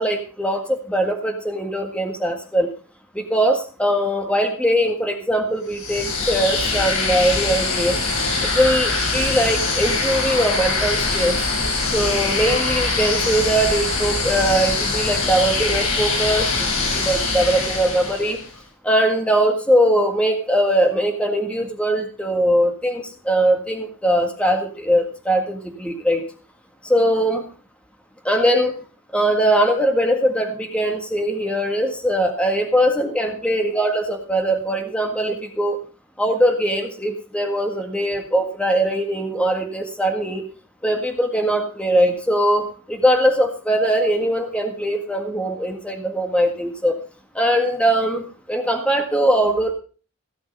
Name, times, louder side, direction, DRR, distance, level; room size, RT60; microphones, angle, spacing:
voice 1, 0.0-2.7 3.1-8.0 8.5-11.4 11.9-18.4 18.8-26.2 26.8-27.4 28.2-28.7 29.1-35.8 36.2-40.4 40.8-47.0 47.3-49.7, right 1 dB, 5° left, 3 dB, 1.7 m, -21 dB
sound 1, 5.7-18.5, left 3 dB, 80° left, 4.8 m, -23 dB
16.5 x 6.9 x 5.4 m, 0.39 s
head